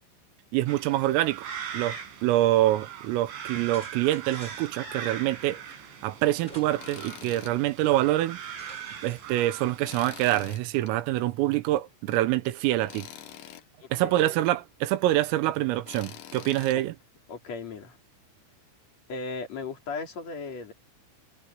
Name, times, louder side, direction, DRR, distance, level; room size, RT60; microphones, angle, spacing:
voice 1, 0.5-1.5 1.7-2.0 2.2-5.6 6.0-8.4 9.0-13.1 13.9-16.9, right 15 dB, 90° right, 3.8 m, -25 dB
sound 1, 0.7-10.4, right 8 dB, 65° right, 6.4 m, -41 dB
sound 2, 3.7-4.9 6.4-7.2 7.5-7.6 8.6-9.4, equal, 10° left, 5.7 m, -51 dB
Tools, 6.8-7.6 8.0-8.1 9.8-10.9 12.9-13.6 15.9-16.8, left 11 dB, 75° left, 2.0 m, -44 dB
voice 2, 17.3-18.0 19.1-20.7, left 4 dB, 40° left, 3.8 m, -36 dB
omnidirectional pair, 5.8 m